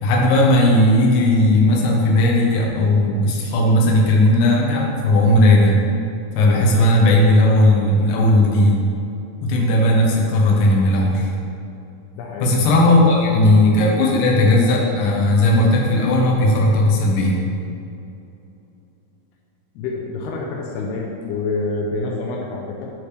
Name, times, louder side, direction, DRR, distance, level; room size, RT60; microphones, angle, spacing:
voice 1, 0.0-5.8 6.4-8.8 9.4-11.3 12.4-17.4, left 1 dB, 65° left, -2 dB, 2.5 m, -16 dB
voice 2, 12.2-12.5 12.8-13.4 14.1-14.3 19.8-22.9, left 3 dB, 85° left, -1 dB, 2.7 m, -28 dB
12.5 x 4.3 x 3.3 m, 2.7 s
omnidirectional pair, 4.6 m